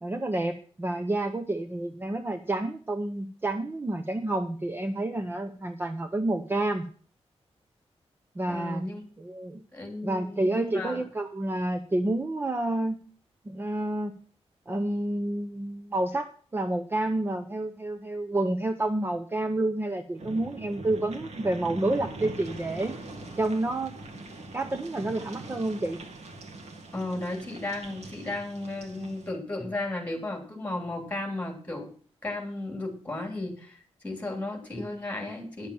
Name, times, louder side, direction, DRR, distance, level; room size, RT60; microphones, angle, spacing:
voice 1, 0.0-6.9 8.4-8.8 9.2-9.6 10.0-13.0 13.5-14.2 14.7-23.0 23.4-23.9 24.5-26.0, right 2 dB, 20° right, 8 dB, 0.7 m, -29 dB
voice 2, 8.5-9.0 9.7-11.0 26.9-31.9 32.2-35.7, left 2 dB, 15° left, 3 dB, 3.2 m, -34 dB
sound 1, 20.2-29.3, right 2 dB, 80° right, 1.9 m, -42 dB
10.5 x 7.2 x 7.1 m, 0.43 s
wide cardioid pair, 170°, 11 cm